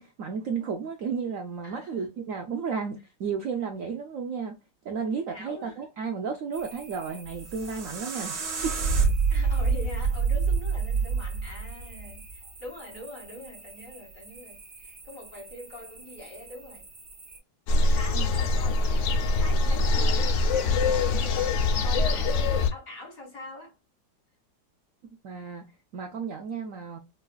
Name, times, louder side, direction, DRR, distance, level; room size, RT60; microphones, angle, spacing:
voice 1, 0.0-4.6 4.8-8.8 18.1-18.3 25.2-25.7 25.9-27.0, right 6 dB, 70° right, 0.8 m, -33 dB
voice 2, 1.6-2.1 5.3-5.8 9.3-16.9 17.7-23.8, left 1 dB, 50° left, 2.2 m, -43 dB
sound 1, 6.5-17.4, right 3 dB, 30° right, 1.2 m, -48 dB
sound 2, 7.3-12.4, right 5 dB, 50° right, 1.3 m, -27 dB
sound 3, 17.7-22.7, left 3 dB, 85° left, 0.6 m, -23 dB
4.7 x 2.4 x 2.2 m
omnidirectional pair, 1.9 m